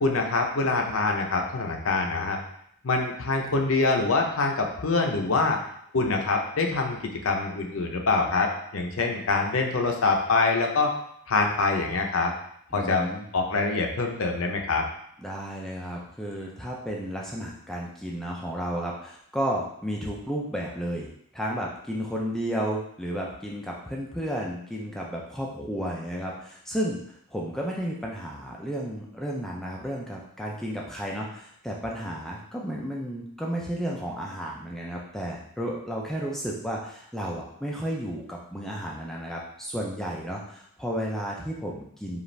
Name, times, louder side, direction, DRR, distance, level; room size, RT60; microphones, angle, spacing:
voice 1, 0.0-2.4 2.8-5.6 5.9-7.0 7.2-10.9 11.3-12.3 12.7-13.1 13.3-14.8, left 3 dB, 60° left, 2 dB, 0.6 m, -25 dB
voice 2, 12.7-13.3 15.2-42.2, equal, ahead, -2 dB, 0.4 m, -32 dB
5.1 x 2.5 x 3.2 m, 0.69 s
head